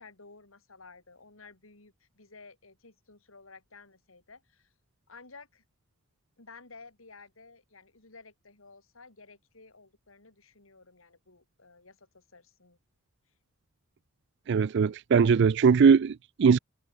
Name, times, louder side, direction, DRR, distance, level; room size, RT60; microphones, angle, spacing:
voice 1, 0.0-4.7 5.1-5.6 6.4-12.8, left 4 dB, 90° left, 3.6 m, -53 dB
voice 2, 14.5-16.6, right 6 dB, 60° right, 0.4 m, -21 dB
head